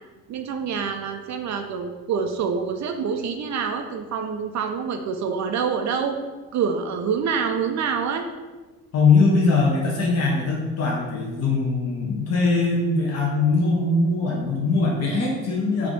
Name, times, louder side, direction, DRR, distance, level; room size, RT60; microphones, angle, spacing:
voice 1, 0.3-6.2 6.5-8.3, right 6 dB, 45° right, 5 dB, 0.4 m, -26 dB
voice 2, 8.9-15.9, left 3 dB, 40° left, -3 dB, 0.8 m, -21 dB
3.5 x 2.4 x 3.8 m, 1.3 s
hypercardioid pair, 55°, 40 cm